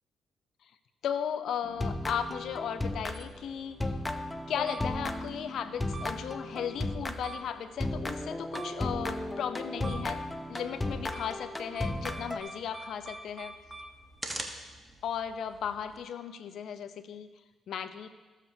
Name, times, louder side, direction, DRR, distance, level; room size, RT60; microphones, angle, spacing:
voice 1, 1.0-3.9 4.5-10.2 10.5-13.5 15.0-17.3 17.7-18.1, left 8 dB, 70° left, 10 dB, 0.6 m, -36 dB
sound 1, 1.6-3.5 3.8-7.4 7.8-12.4, left 1 dB, 15° left, 0.6 m, -35 dB
sound 2, 2.2-16.0, right 2 dB, 15° right, 1.1 m, -47 dB
14.0 x 7.4 x 2.8 m, 1.3 s
supercardioid pair, 70°, 0 cm